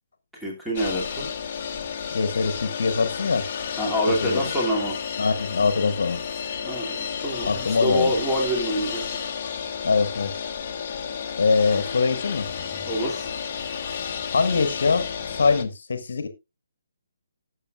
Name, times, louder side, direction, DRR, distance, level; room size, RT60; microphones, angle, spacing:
voice 1, 0.3-1.3 3.8-4.9 6.6-9.2 12.9-13.3, equal, ahead, 2.6 m, -26 dB
sound 1, 0.7-15.6, left 7 dB, 30° left, 1.3 m, -32 dB
voice 2, 2.1-3.4 4.2-4.4 5.2-6.2 7.5-8.1 9.8-10.3 11.4-12.5 14.3-16.3, left 4 dB, 55° left, 1.4 m, -23 dB
19.5 x 6.6 x 2.4 m
figure-of-eight pair, 140°, 0 cm